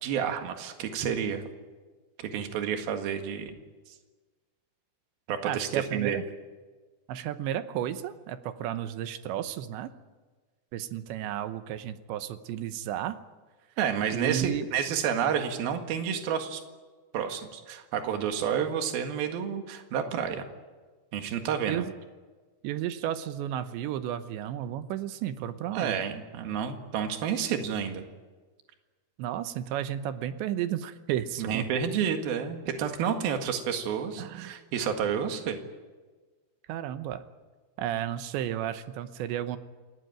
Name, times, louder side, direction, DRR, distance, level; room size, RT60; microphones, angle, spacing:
voice 1, 0.0-1.5 2.2-3.6 5.3-6.2 13.8-16.6 17.1-20.4 21.1-21.9 25.7-28.0 31.4-35.6, right 8 dB, 60° right, 5 dB, 3.4 m, -30 dB
voice 2, 5.4-6.2 7.1-9.9 10.7-13.2 14.1-14.7 21.7-21.9 22.6-26.0 29.2-31.7 34.2-34.6 36.7-37.2 37.8-39.6, right 11 dB, 80° right, 11 dB, 3.2 m, -33 dB
28.0 x 18.0 x 9.1 m, 1.4 s
omnidirectional pair, 5.2 m